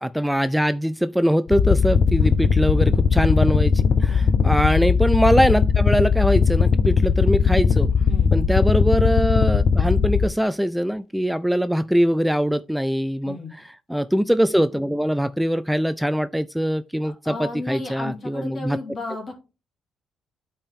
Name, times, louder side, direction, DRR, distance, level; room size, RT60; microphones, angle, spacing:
voice 1, 0.0-7.9 8.3-18.8, equal, ahead, 0.3 m, -22 dB
sound 1, 1.5-10.2, left 6 dB, 60° left, 0.8 m, -19 dB
voice 2, 17.0-19.3, left 2 dB, 45° left, 2.6 m, -34 dB
8.6 x 4.4 x 3.6 m
cardioid pair, 90°, 0 cm